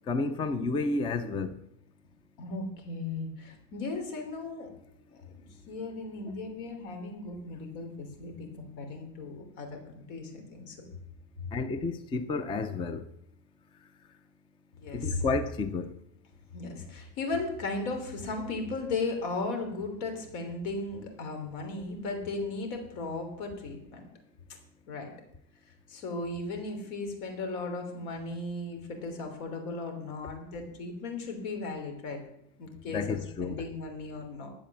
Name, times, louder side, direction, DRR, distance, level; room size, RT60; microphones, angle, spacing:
voice 1, 0.1-1.6 11.5-13.1 14.9-15.9 32.9-33.6, left 3 dB, 15° left, 0.4 m, -31 dB
voice 2, 2.4-4.7 5.1-9.8 10.1-10.8 14.8-15.2 16.5-24.1 24.9-25.1 25.9-32.2 32.6-34.5, left 3 dB, 80° left, 3.4 m, -36 dB
12.0 x 7.5 x 7.1 m
cardioid pair, 155°, 42 cm